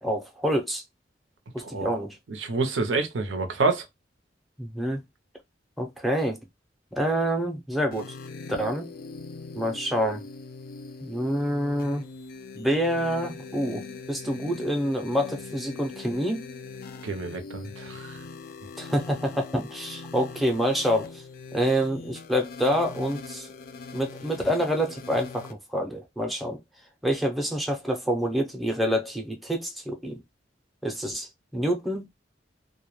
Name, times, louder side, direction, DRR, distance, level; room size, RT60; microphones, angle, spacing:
voice 1, 0.0-0.8 1.5-2.2 4.6-5.0 5.8-6.4 6.9-8.1 8.6-8.9 9.5-10.3 11.0-12.1 12.5-16.4 18.8-21.2 21.5-23.5 23.9-26.6 27.0-30.2 30.8-32.1, equal, ahead, 0.5 m, -27 dB
voice 2, 1.6-2.0 2.3-3.8 17.0-18.2, right 3 dB, 90° right, 0.6 m, -28 dB
sound 1, 7.9-25.5, left 4 dB, 55° left, 0.4 m, -42 dB
2.2 x 2.1 x 3.0 m
head